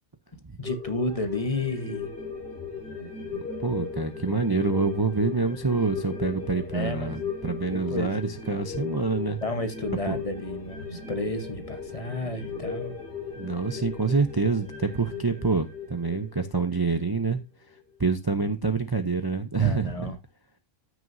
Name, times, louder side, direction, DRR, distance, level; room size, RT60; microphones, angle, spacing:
sound 1, 0.6-17.4 17.8-17.9, left 5 dB, 50° left, 5.5 m, -37 dB
voice 1, 0.6-2.1 3.3-3.4 6.7-7.1 7.6-8.2 9.4-12.9 19.6-20.2, left 2 dB, 30° left, 1.0 m, -32 dB
voice 2, 3.6-9.4 10.1-10.2 13.4-17.4 18.0-20.1, right 4 dB, 25° right, 0.6 m, -26 dB
14.5 x 6.3 x 2.7 m
omnidirectional pair, 1.3 m